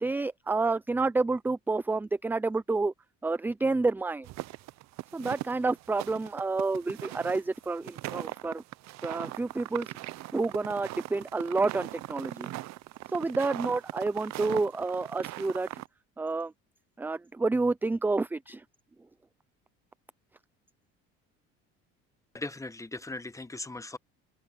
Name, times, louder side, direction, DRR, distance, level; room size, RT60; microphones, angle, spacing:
voice 1, 0.0-2.9 3.2-4.3 5.1-8.6 9.0-9.9 10.3-12.5 13.1-15.7 16.2-16.5 17.0-18.6, right 3 dB, 5° right, 0.4 m, -29 dB
sound 1, 4.2-15.9, right 17 dB, 60° right, 0.7 m, -40 dB
voice 2, 22.3-24.0, left 2 dB, 10° left, 1.2 m, -38 dB
open air
supercardioid pair, 95°, 30 cm